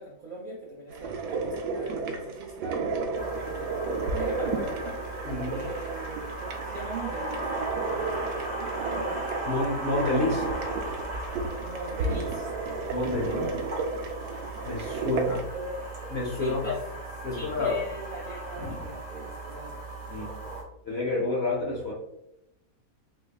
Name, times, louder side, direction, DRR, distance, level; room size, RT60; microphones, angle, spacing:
voice 1, 0.0-5.0 5.5-7.5 7.9-9.3 11.6-13.6 15.0-15.9 16.3-16.8 17.3-19.8, right 2 dB, 50° right, -4 dB, 0.6 m, -41 dB
sound 1, 0.9-15.4, right 3 dB, 85° right, 1.2 m, -33 dB
sound 2, 3.1-20.6, right 2 dB, 30° right, 0.9 m, -37 dB
voice 2, 5.2-5.6 9.5-10.5 12.9-13.4 14.6-15.4 16.1-16.7 17.2-17.8 18.6-18.7 20.1-20.4 20.8-21.9, left 2 dB, 50° left, -3 dB, 0.9 m, -29 dB
4.3 x 3.2 x 2.3 m, 0.85 s
omnidirectional pair, 1.7 m